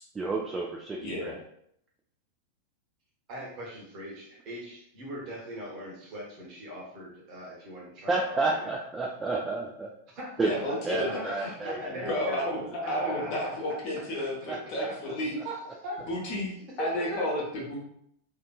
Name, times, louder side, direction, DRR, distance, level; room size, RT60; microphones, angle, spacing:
voice 1, 0.1-1.4 8.1-9.9 10.4-10.5 10.8-12.6 12.9-13.5 14.5-15.1, right 3 dB, 15° right, -2 dB, 0.3 m, -31 dB
voice 2, 1.0-1.3 10.4-15.4 16.1-17.8, left 1 dB, 45° left, -3 dB, 0.9 m, -32 dB
voice 3, 3.3-8.7 10.1-10.3 10.7-12.4 12.8-13.3 15.2-15.6 15.8-16.0 16.8-17.2, equal, 40° right, -3 dB, 1.0 m, -40 dB
2.7 x 2.5 x 2.2 m, 0.71 s
figure-of-eight pair, 90°, 0 cm